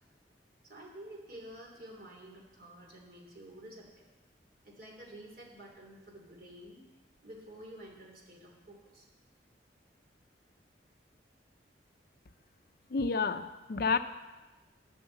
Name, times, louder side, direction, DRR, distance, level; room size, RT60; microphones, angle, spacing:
voice 1, 0.6-4.1 4.6-6.9 7.2-9.1, right 1 dB, 55° right, -1 dB, 3.0 m, -50 dB
voice 2, 12.9-14.0, left 4 dB, 55° left, 10 dB, 0.6 m, -30 dB
10.5 x 7.8 x 8.0 m, 1.1 s
head